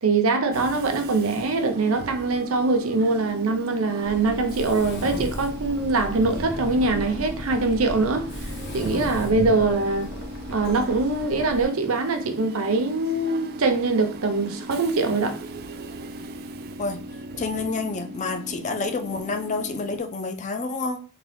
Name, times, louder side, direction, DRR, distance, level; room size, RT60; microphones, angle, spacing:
voice 1, 0.0-10.1 10.5-15.4, right 3 dB, 75° right, 0.7 m, -23 dB
Train / Subway metro underground, 0.5-20.0, right 1 dB, 50° right, 0.3 m, -38 dB
Mechanisms, 4.0-11.6, left 1 dB, 60° left, 1.0 m, -37 dB
Train, 4.9-9.9, equal, 15° left, 0.8 m, -36 dB
voice 2, 17.4-21.0, left 3 dB, 35° left, 0.5 m, -28 dB
3.7 x 2.2 x 3.3 m
head